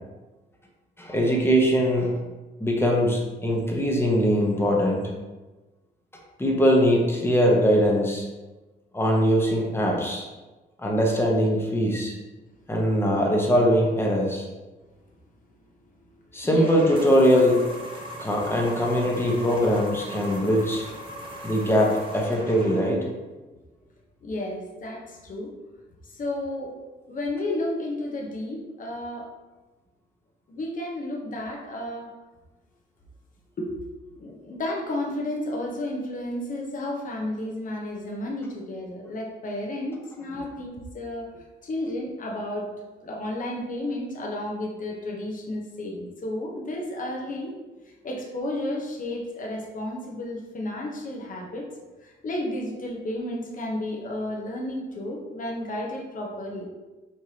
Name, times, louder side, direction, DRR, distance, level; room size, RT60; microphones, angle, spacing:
voice 1, 1.0-2.1 2.6-5.1 6.4-8.3 8.9-10.3 10.8-12.1 12.7-14.5 16.3-17.6 18.2-20.8 21.4-23.1, equal, 10° left, -2 dB, 0.9 m, -21 dB
voice 2, 16.4-16.8 24.2-25.5 26.0-26.7 27.0-29.3 30.5-32.1 33.6-33.7 34.1-41.3 41.6-42.7 43.0-47.5 48.0-51.7 52.0-56.7, left 1 dB, 40° left, -1 dB, 0.9 m, -32 dB
sound 1, 16.6-23.1, equal, 25° right, 0.9 m, -39 dB
4.4 x 3.1 x 2.8 m, 1.2 s
cardioid pair, 90°, 20 cm